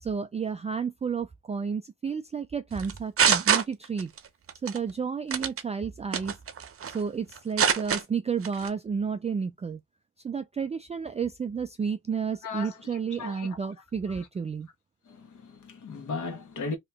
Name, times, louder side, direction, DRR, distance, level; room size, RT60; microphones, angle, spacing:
voice 1, 0.0-4.1 4.6-6.4 6.9-9.8 10.2-14.7, right 6 dB, 20° right, 0.3 m, -31 dB
sound 1, 2.8-4.2 4.5-4.8 5.3-5.6 6.1-7.0 7.3-8.0 8.4-8.7, right 7 dB, 45° right, 0.7 m, -24 dB
voice 2, 12.4-13.7 14.1-14.3 15.1-16.8, left 4 dB, 65° left, 1.4 m, -37 dB
3.0 x 2.9 x 3.4 m
cardioid pair, 90°, 32 cm